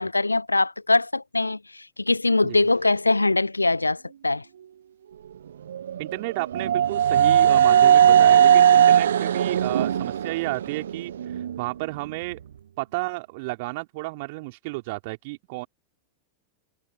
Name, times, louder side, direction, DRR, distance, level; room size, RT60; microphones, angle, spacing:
voice 1, 0.0-4.4, left 2 dB, 80° left, 0.3 m, -22 dB
sound 1, 5.7-11.6, right 9 dB, 65° right, 0.3 m, -18 dB
voice 2, 6.0-12.4 12.8-15.7, right 24 dB, 50° right, 3.3 m, -32 dB
figure-of-eight pair, 90°, 0 cm